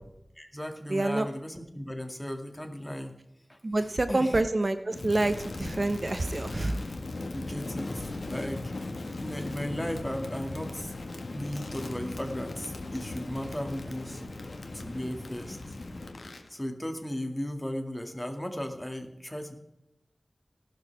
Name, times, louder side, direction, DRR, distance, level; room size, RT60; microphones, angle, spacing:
voice 1, 0.4-3.2 3.5-3.6 4.1-4.4 7.3-10.9 11.3-14.2 14.7-15.6 16.5-19.6, equal, 15° left, 4 dB, 2.2 m, -36 dB
voice 2, 0.9-1.3 3.6-6.8, right 2 dB, 50° right, 9 dB, 1.0 m, -27 dB
Crackle, 4.9-16.5, left 2 dB, 85° left, 1.7 m, -38 dB
18.0 x 12.5 x 3.5 m, 0.86 s
wide cardioid pair, 60°, 0 cm